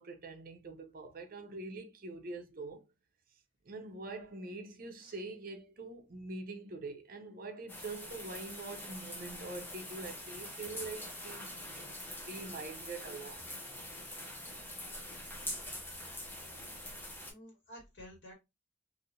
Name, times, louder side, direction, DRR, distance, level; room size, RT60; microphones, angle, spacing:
voice 1, 0.0-2.8 3.7-12.0 12.3-13.5, right 3 dB, 50° right, 0.6 m, -44 dB
sound 1, 7.7-17.3, left 1 dB, 10° left, 0.8 m, -44 dB
voice 2, 17.3-18.3, equal, 85° left, 1.7 m, -52 dB
3.2 x 2.6 x 2.6 m
head